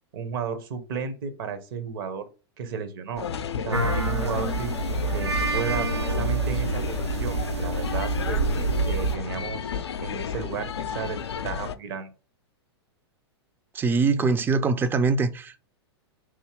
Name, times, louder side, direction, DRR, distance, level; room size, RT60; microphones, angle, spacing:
voice 1, 0.1-2.2 2.6-3.3 3.6-4.7 5.1-8.4 8.8-12.1, right 6 dB, 55° right, 0.8 m, -33 dB
sound 1, 3.2-11.8, left 7 dB, 75° left, 0.4 m, -33 dB
sound 2, 3.7-9.2, right 3 dB, 90° right, 0.7 m, -27 dB
voice 2, 13.8-15.6, right 4 dB, 15° right, 0.4 m, -23 dB
3.5 x 2.7 x 4.6 m
figure-of-eight pair, 95°, 14 cm